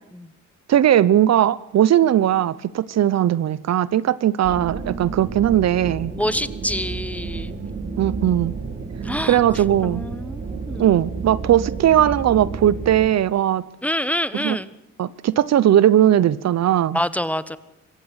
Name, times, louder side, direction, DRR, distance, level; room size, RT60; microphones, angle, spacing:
voice 1, 0.7-6.1 8.0-8.5 9.2-10.0 10.8-13.6 14.4-14.6 15.0-17.0, right 11 dB, 60° right, 0.9 m, -18 dB
sound 1, 4.4-13.1, right 4 dB, 40° right, 3.3 m, -31 dB
voice 2, 6.1-7.6 9.0-9.4 9.8-11.0 13.8-14.7 16.9-17.6, equal, 5° left, 1.2 m, -26 dB
25.0 x 15.5 x 8.1 m
cardioid pair, 90°, 30 cm